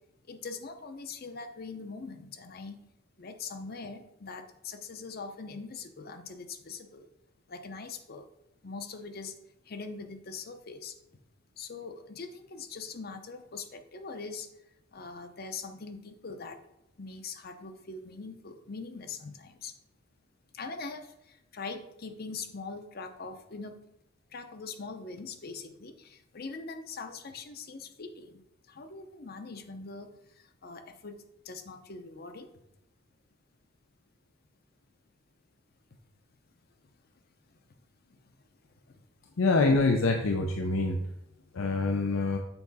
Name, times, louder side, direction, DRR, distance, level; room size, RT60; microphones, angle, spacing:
voice 1, 0.3-2.8 3.2-7.1 7.5-8.3 8.6-9.3 9.7-10.9 11.6-14.5 14.9-16.6 17.0-19.7 20.5-23.7 24.3-28.4 28.7-31.2 31.4-32.5 38.1-38.3, left 4 dB, 50° left, 7 dB, 0.7 m, -42 dB
voice 2, 39.4-41.0 41.5-42.4, left 3 dB, 85° left, 4 dB, 0.6 m, -25 dB
7.0 x 4.8 x 4.1 m, 0.86 s
head